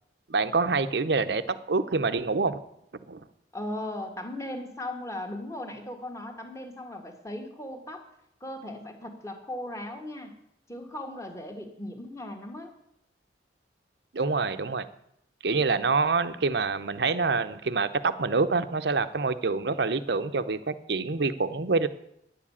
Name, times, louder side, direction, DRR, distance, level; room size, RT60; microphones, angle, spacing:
voice 1, 0.3-2.6 3.1-3.3 14.1-14.9 15.4-21.9, right 4 dB, 60° right, 12 dB, 0.7 m, -26 dB
voice 2, 3.5-8.1 8.4-10.4 10.7-12.7, left 1 dB, 15° left, 4 dB, 1.6 m, -37 dB
10.0 x 7.4 x 8.5 m, 0.76 s
head